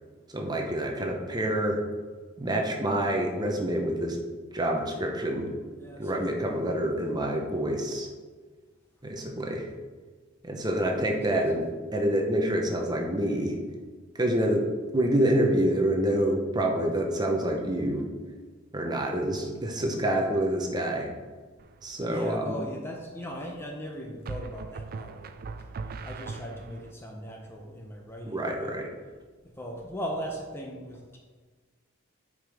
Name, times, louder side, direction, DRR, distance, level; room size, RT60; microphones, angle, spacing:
voice 1, 0.3-1.8 2.4-4.2 4.5-5.5 6.0-8.1 9.0-9.7 10.4-13.6 14.1-14.7 14.9-18.0 18.7-21.1 21.8-22.6 28.3-28.9, right 1 dB, 20° right, 1 dB, 0.8 m, -27 dB
voice 2, 5.8-6.4 10.7-11.4 22.0-28.7 29.4-31.2, equal, 10° left, 0 dB, 0.7 m, -39 dB
sound 1, 21.6-22.1 24.3-26.9, right 4 dB, 45° right, 0.4 m, -39 dB
9.3 x 5.0 x 3.5 m, 1.4 s
head